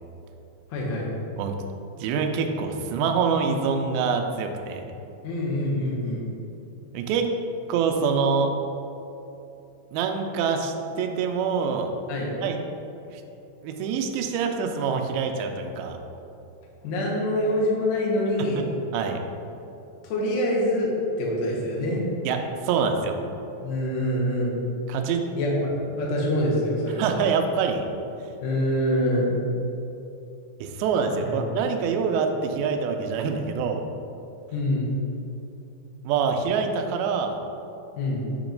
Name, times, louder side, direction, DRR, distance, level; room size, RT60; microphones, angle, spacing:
voice 1, 0.7-1.1 5.2-6.2 12.1-12.3 16.8-18.6 20.0-20.9 21.2-22.0 23.6-24.6 25.3-27.1 28.4-29.4 31.2-31.4 34.5-34.9 37.9-38.2, left 1 dB, 75° left, -4 dB, 1.6 m, -25 dB
voice 2, 2.0-4.9 6.9-7.3 7.7-8.5 9.9-11.9 12.4-12.6 13.1-13.2 13.6-16.0 18.6-18.7 18.9-19.2 22.2-23.2 24.9-25.2 27.0-27.8 30.6-33.8 36.0-37.4, right 5 dB, 85° right, 4 dB, 2.1 m, -25 dB
7.4 x 3.0 x 5.1 m, 2.8 s
omnidirectional pair, 4.8 m